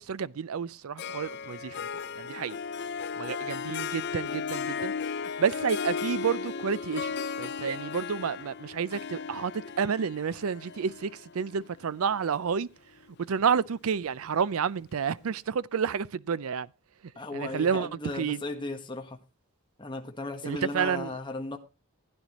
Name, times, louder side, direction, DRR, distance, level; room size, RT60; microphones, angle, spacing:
voice 1, 0.0-1.8 2.2-2.6 3.1-12.7 13.3-16.7 17.3-18.4 20.4-21.2, right 6 dB, 80° right, 0.5 m, -30 dB
Harp, 1.0-12.4, left 5 dB, 50° left, 0.5 m, -36 dB
voice 2, 17.2-19.2 19.8-21.6, left 2 dB, 20° left, 1.3 m, -36 dB
15.5 x 9.8 x 3.0 m
head